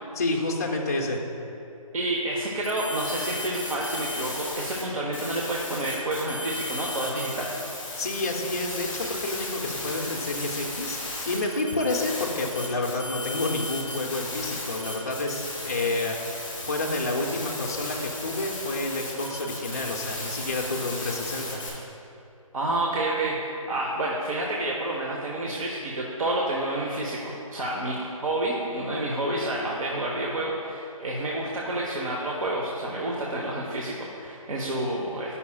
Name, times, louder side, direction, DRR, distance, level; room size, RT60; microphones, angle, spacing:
voice 1, 0.2-1.3 7.9-16.4 16.6-21.6, left 2 dB, 30° left, 0 dB, 0.4 m, -29 dB
voice 2, 1.9-7.5 22.5-35.4, right 1 dB, 70° right, -3 dB, 0.8 m, -29 dB
sound 1, 2.6-4.8 5.1-21.7, left 2 dB, 10° left, 0.9 m, -35 dB
9.4 x 5.5 x 2.2 m, 2.8 s
hypercardioid pair, 170°, 18 cm